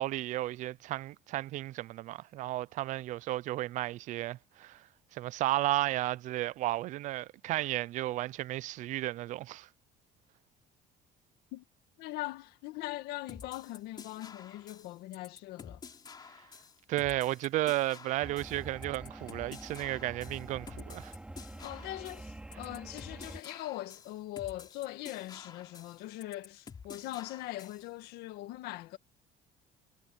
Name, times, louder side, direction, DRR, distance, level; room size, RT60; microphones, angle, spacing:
voice 1, 0.0-9.7 16.9-21.1, right 16 dB, 50° right, 0.4 m, -33 dB
voice 2, 12.0-15.8 21.6-29.0, left 16 dB, 85° left, 1.6 m, -41 dB
sound 1, 13.3-27.9, left 6 dB, 25° left, 3.8 m, -50 dB
sound 2, 18.2-23.4, right 1 dB, 5° right, 3.0 m, -46 dB
cardioid pair, 175°, 16 cm